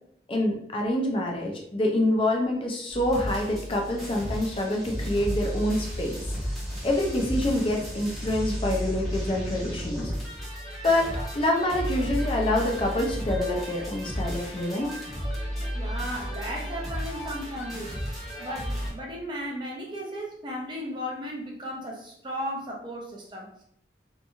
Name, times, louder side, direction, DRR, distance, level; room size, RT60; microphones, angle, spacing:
voice 1, 0.3-6.2 6.8-10.1 10.8-14.9, left 1 dB, 30° left, 1 dB, 0.4 m, -26 dB
sound 1, 2.9-18.9, equal, ahead, 1.0 m, -33 dB
voice 2, 15.7-23.6, equal, 25° right, -1 dB, 0.5 m, -35 dB
2.8 x 2.6 x 2.3 m, 0.70 s
head